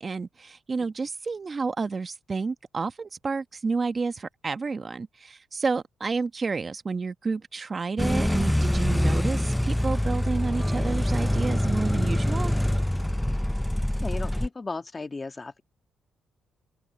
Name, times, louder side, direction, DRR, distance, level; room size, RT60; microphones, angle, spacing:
voice 1, 0.0-12.6, right 4 dB, 35° right, 1.5 m, -30 dB
sound 1, 8.0-14.5, left 1 dB, 5° left, 0.7 m, -25 dB
voice 2, 14.0-15.6, left 3 dB, 25° left, 1.7 m, -35 dB
open air
cardioid pair, 90°, 0 cm